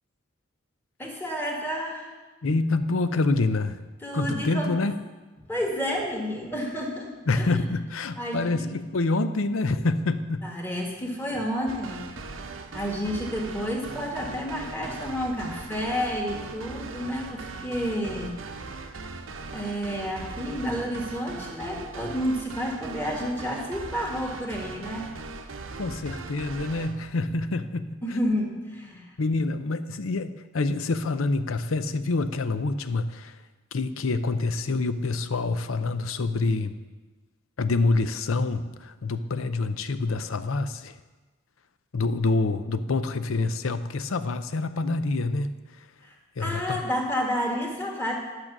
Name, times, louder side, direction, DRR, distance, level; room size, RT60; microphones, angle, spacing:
voice 1, 1.0-2.1 4.0-4.8 5.5-7.6 8.2-8.7 10.4-12.4 12.7-18.4 19.5-25.1 28.0-29.1 46.0-48.2, equal, 10° left, -1 dB, 1.7 m, -30 dB
voice 2, 2.4-3.8 4.1-5.0 7.3-10.5 25.8-28.2 29.2-33.4 33.7-36.8 37.6-41.0 41.9-45.8 46.4-46.8, left 3 dB, 80° left, 11 dB, 0.6 m, -27 dB
sound 1, 11.7-27.0, right 3 dB, 70° right, 0.8 m, -39 dB
11.0 x 6.7 x 6.1 m, 1.3 s
head